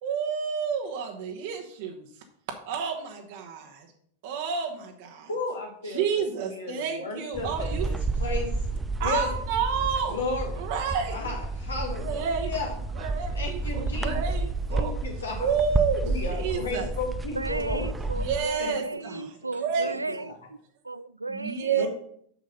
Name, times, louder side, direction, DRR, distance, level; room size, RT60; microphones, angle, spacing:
voice 1, 0.0-2.1 2.6-3.9 4.2-5.3 5.8-7.8 9.0-10.2 10.6-11.1 12.0-12.5 12.9-14.9 15.4-16.9 18.2-19.2 19.6-20.0 21.3-21.9, right 6 dB, 50° right, 2 dB, 1.1 m, -30 dB
voice 2, 5.3-6.2 6.5-8.7 9.0-9.4 10.1-10.6 11.1-12.7 13.3-14.4 14.7-15.5 16.0-17.9 18.6-18.7 19.1-19.2 19.8-19.9 21.8-21.9, left 3 dB, 70° left, 0 dB, 1.6 m, -34 dB
sound 1, 7.3-18.4, right 3 dB, 10° right, 0.5 m, -31 dB
voice 3, 17.4-20.6 20.8-21.9, right 2 dB, 80° right, 17 dB, 0.3 m, -34 dB
6.9 x 6.2 x 5.4 m, 0.65 s
figure-of-eight pair, 90°, 0 cm